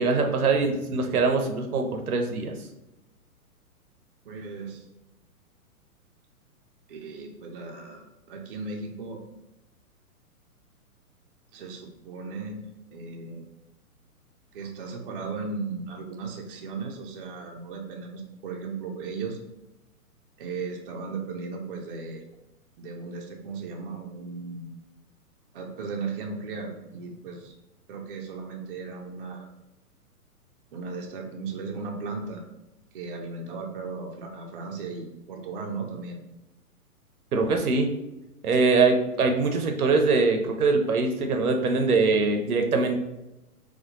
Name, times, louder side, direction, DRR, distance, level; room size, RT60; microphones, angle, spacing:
voice 1, 0.0-2.5 37.3-38.0 38.4-43.0, right 3 dB, 75° right, 4 dB, 0.7 m, -23 dB
voice 2, 4.2-4.9 6.9-9.2 11.5-12.6 12.9-13.4 14.5-19.4 20.4-22.2 22.8-24.7 25.5-27.5 27.9-29.5 30.7-32.4 32.9-36.2, right 4 dB, 40° right, 1 dB, 0.5 m, -36 dB
4.2 x 2.2 x 2.8 m, 0.94 s
figure-of-eight pair, 120°, 45 cm